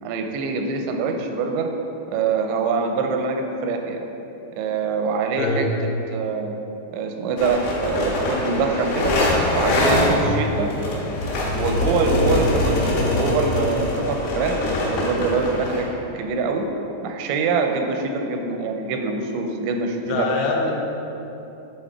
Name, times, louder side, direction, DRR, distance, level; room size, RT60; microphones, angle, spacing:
voice 1, 0.0-1.7 2.1-4.0 4.5-5.7 6.1-6.6 6.9-9.1 9.5-10.7 11.5-15.9 16.1-16.7 17.0-20.3, right 4 dB, 85° right, 4 dB, 2.9 m, -24 dB
sound 1, 7.4-15.8, left 1 dB, 70° left, 3.4 m, -23 dB
voice 2, 20.0-20.7, left 4 dB, 90° left, -1 dB, 3.0 m, -24 dB
10.0 x 3.9 x 4.7 m, 2.9 s
omnidirectional pair, 5.1 m